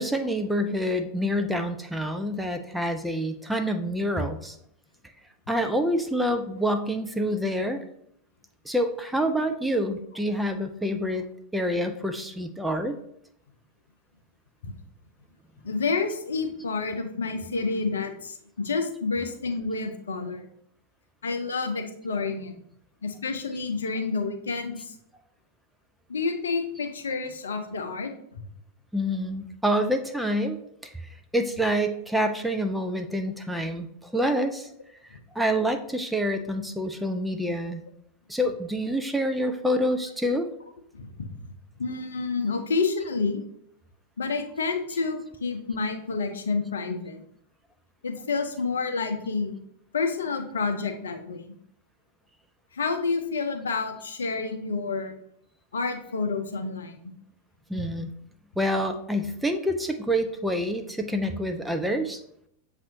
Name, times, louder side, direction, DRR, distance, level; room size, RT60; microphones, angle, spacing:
voice 1, 0.0-4.6 5.5-7.8 8.7-11.3 11.5-13.0 28.9-30.9 31.3-34.7 35.3-37.8 38.3-40.5 57.7-58.1 58.6-62.2, equal, 5° right, 6 dB, 0.4 m, -27 dB
voice 2, 15.6-20.5 21.2-22.5 23.0-25.0 26.1-28.1 35.1-35.2 40.9-41.3 41.8-43.4 44.2-47.2 48.0-49.5 49.9-51.4 52.7-55.1 55.7-56.9, left 4 dB, 70° left, 5 dB, 0.6 m, -29 dB
7.2 x 2.5 x 2.7 m, 0.71 s
figure-of-eight pair, 90°, 0 cm